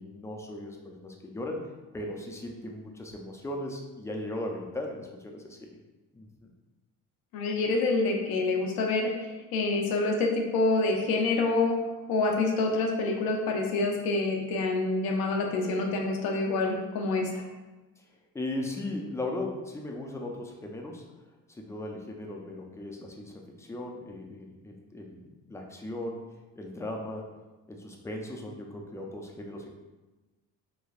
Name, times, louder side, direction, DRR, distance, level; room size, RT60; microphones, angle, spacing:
voice 1, 0.0-1.6 1.9-5.8 6.1-6.5 18.0-18.1 18.3-21.0 21.5-26.2 26.6-27.2 27.7-29.7, left 1 dB, 10° left, 1 dB, 0.4 m, -37 dB
voice 2, 7.3-9.3 9.5-11.8 12.1-17.4, left 3 dB, 85° left, 1 dB, 0.6 m, -27 dB
3.2 x 2.3 x 2.3 m, 1.2 s
cardioid pair, 85°, 35 cm